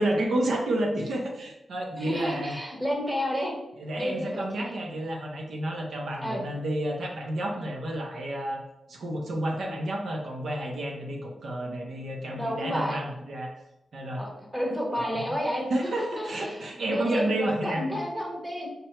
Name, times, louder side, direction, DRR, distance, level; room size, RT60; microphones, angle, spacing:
voice 1, 0.0-2.5 3.8-8.6 8.9-13.5 13.9-14.2 15.7-18.0, right 1 dB, 65° right, 0 dB, 0.7 m, -30 dB
voice 2, 2.0-3.5 3.9-4.7 6.2-6.4 12.3-13.0 14.2-15.7 16.0-16.6 16.9-18.7, equal, 10° right, -2 dB, 0.9 m, -31 dB
5.1 x 2.2 x 4.3 m, 0.89 s
wide cardioid pair, 155°, 0 cm